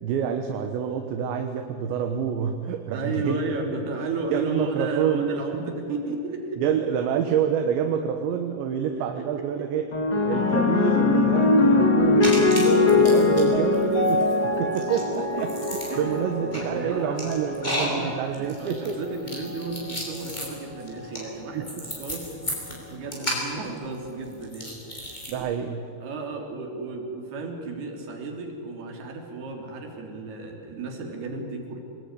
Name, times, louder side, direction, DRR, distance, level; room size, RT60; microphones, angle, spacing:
voice 1, 0.0-3.8 4.3-5.4 6.6-9.9 10.2-14.3 14.6-15.5 16.0-19.1 21.6-21.9 25.3-25.8, right 8 dB, 75° right, 5 dB, 3.5 m, -27 dB
voice 2, 2.9-6.6 8.9-9.7 12.6-13.3 15.4-15.5 15.9-22.4 22.9-25.5 26.0-31.8, right 3 dB, 55° right, 1 dB, 5.3 m, -34 dB
sound 1, 9.9-18.5 19.4-19.8, left 3 dB, 40° left, 1.4 m, -22 dB
sound 2, 12.2-13.4 13.7-25.3, equal, 10° left, 5.1 m, -34 dB
26.5 x 20.0 x 9.9 m, 2.6 s
omnidirectional pair, 5.5 m